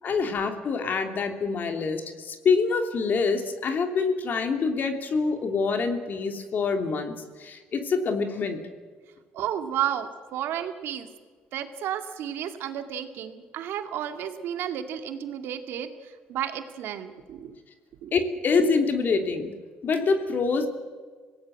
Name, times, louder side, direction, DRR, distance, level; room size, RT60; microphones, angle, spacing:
voice 1, 0.0-8.6 18.1-19.5 19.8-20.7, left 4 dB, 50° left, 5 dB, 3.1 m, -26 dB
voice 2, 9.3-11.1 11.5-17.5 18.0-18.1, right 10 dB, 75° right, 6 dB, 2.3 m, -32 dB
25.5 x 18.0 x 7.7 m, 1.5 s
supercardioid pair, 80°, 4 cm